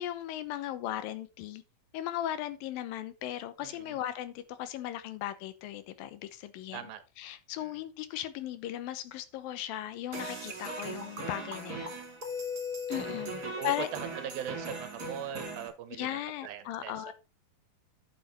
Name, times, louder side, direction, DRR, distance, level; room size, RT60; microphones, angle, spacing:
voice 1, 0.0-1.6 1.9-6.8 7.2-11.9 12.9-13.3 13.6-13.9 16.0-17.1, left 12 dB, 80° left, 12 dB, 2.6 m, -37 dB
voice 2, 3.6-4.0 6.7-7.0 7.6-7.7 12.9-13.9 14.1-17.1, right 9 dB, 85° right, 12 dB, 2.8 m, -41 dB
sound 1, 10.1-15.7, equal, 30° right, 2.6 m, -38 dB
10.0 x 6.6 x 4.2 m, 0.28 s
omnidirectional pair, 4.2 m